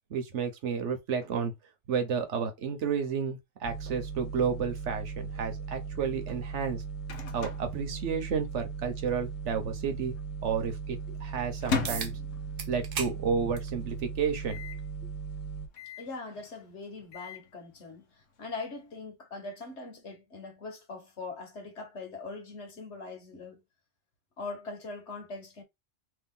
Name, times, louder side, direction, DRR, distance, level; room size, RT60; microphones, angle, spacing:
voice 1, 0.1-1.5 1.9-6.8 7.3-10.1 10.4-12.1 12.7-14.6, right 6 dB, 75° right, 1.2 m, -31 dB
sound 1, 3.6-15.7, right 5 dB, 30° left, 1.3 m, -38 dB
Microwave oven, 6.5-8.7 8.9-9.0 9.2-9.8 10.3-13.0 13.4-13.5 13.7-13.8 14.4-14.9 15.7-16.2 16.8-17.5, left 5 dB, 85° left, 1.1 m, -38 dB
sound 2, 11.8-12.1 12.6-13.2 13.6-13.7 14.8-14.9 19.8-19.9, right 6 dB, 90° right, 1.1 m, -35 dB
voice 2, 16.0-18.0 18.4-23.6 24.4-25.6, left 3 dB, 70° left, 1.6 m, -41 dB
3.1 x 2.8 x 3.6 m
omnidirectional pair, 1.3 m